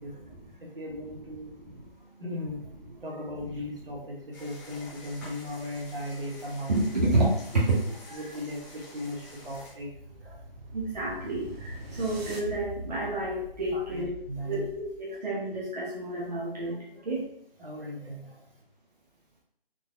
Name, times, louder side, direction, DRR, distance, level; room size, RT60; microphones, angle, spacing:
voice 1, 0.0-0.7 1.5-2.2 6.7-7.8 8.1-8.2 10.7-14.2 14.4-16.8 17.0-17.2, right 2 dB, 45° right, -6 dB, 0.7 m, -30 dB
voice 2, 0.6-1.6 2.2-2.6 3.0-6.7 7.5-7.6 8.1-9.9 10.2-10.4 13.7-14.7 17.0-17.1 17.6-18.4, left 1 dB, 70° right, -3 dB, 1.2 m, -37 dB
sound 1, 4.3-9.7, left 2 dB, 20° right, 0.9 m, -48 dB
sound 2, 8.9-15.1, equal, 85° right, 0.9 m, -44 dB
3.9 x 2.7 x 2.3 m, 0.69 s
figure-of-eight pair, 180°, 30 cm